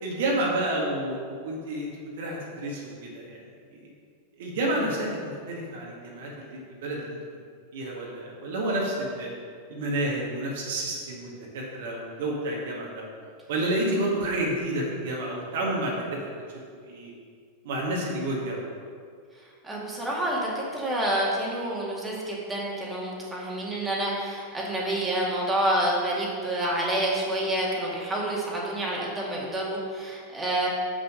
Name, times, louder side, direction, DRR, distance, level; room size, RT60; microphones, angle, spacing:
voice 1, 0.0-1.9 2.2-3.4 4.4-5.1 5.5-7.2 7.7-9.3 9.7-13.1 13.5-16.2 16.9-17.1 17.6-18.6, right 1 dB, 55° right, -3 dB, 1.8 m, -29 dB
voice 2, 19.6-30.7, right 1 dB, 10° right, -5 dB, 2.2 m, -28 dB
7.5 x 6.4 x 6.2 m, 2.1 s
figure-of-eight pair, 90°, 0 cm